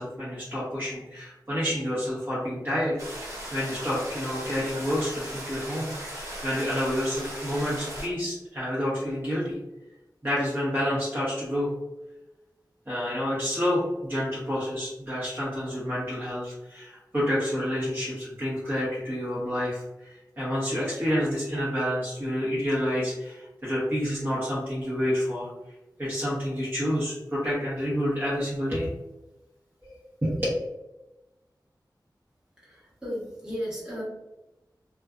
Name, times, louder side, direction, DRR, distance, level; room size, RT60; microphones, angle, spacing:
voice 1, 0.0-3.0 3.5-9.6 10.2-11.7 12.9-25.5 26.0-28.9 29.8-29.9 30.2-30.5, equal, 30° right, -10 dB, 0.9 m, -29 dB
sound 1, 3.0-8.1, equal, 45° right, 1.2 m, -38 dB
voice 2, 32.6-34.0, equal, 10° right, -7 dB, 1.2 m, -35 dB
2.5 x 2.2 x 2.3 m, 0.99 s
wide cardioid pair, 70°, 8 cm